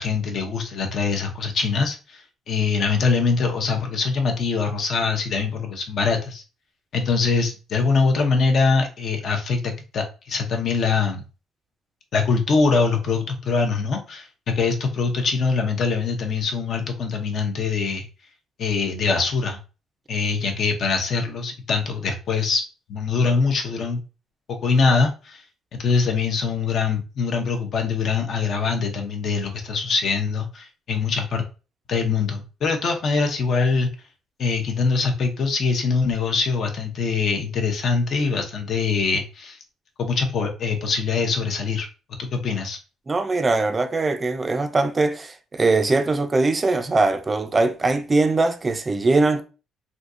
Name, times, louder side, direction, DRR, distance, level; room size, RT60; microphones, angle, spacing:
voice 1, 0.0-6.4 6.9-11.2 12.1-18.1 18.6-19.6 20.1-22.6 22.9-24.0 24.5-25.4 25.7-31.4 31.9-33.9 34.4-39.6 40.0-41.9 42.2-42.8, left 4 dB, 50° left, 0.7 m, -23 dB
voice 2, 43.1-49.4, right 3 dB, 25° right, 0.4 m, -21 dB
3.5 x 2.7 x 2.5 m
cardioid pair, 125°, 0 cm